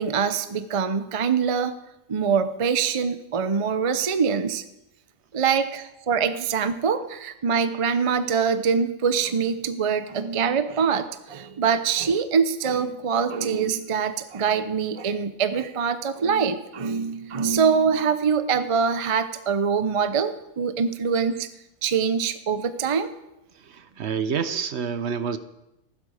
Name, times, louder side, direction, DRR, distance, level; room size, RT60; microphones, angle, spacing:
voice 1, 0.0-1.8 2.1-4.6 5.3-21.5 21.8-23.1, right 6 dB, 35° right, 11 dB, 0.6 m, -24 dB
voice 2, 23.6-25.4, right 6 dB, 60° right, 12 dB, 0.9 m, -28 dB
15.0 x 12.5 x 4.9 m, 0.89 s
omnidirectional pair, 1.4 m